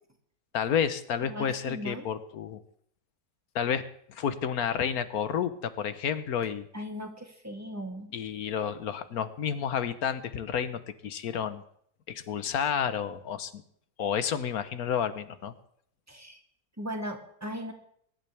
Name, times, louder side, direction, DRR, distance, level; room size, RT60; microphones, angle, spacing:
voice 1, 0.5-2.6 3.5-6.7 8.1-11.6 12.1-13.6 14.0-15.5, left 8 dB, 70° left, 12 dB, 1.4 m, -30 dB
voice 2, 1.2-2.0 6.7-8.1 16.1-16.4 16.8-17.7, equal, 10° right, 3 dB, 1.8 m, -38 dB
23.0 x 11.5 x 3.4 m, 0.67 s
omnidirectional pair, 1.7 m